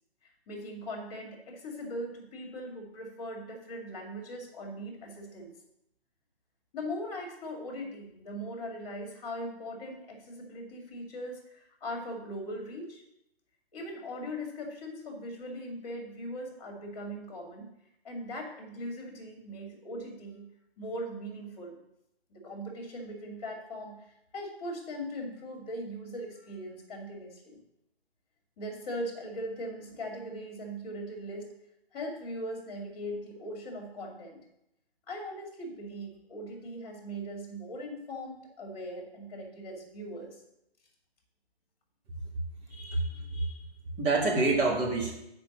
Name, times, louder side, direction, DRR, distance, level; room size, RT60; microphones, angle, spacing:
voice 1, 0.2-5.5 6.7-13.0 13.7-17.7 18.0-20.4 20.8-21.8 22.3-24.0 24.3-27.6 28.6-31.5 31.9-34.4 35.1-40.4, equal, 35° left, 1 dB, 2.3 m, -40 dB
voice 2, 42.7-43.5 44.0-45.1, right 3 dB, 15° right, -4 dB, 1.8 m, -27 dB
8.0 x 5.2 x 6.1 m, 0.82 s
figure-of-eight pair, 135°, 31 cm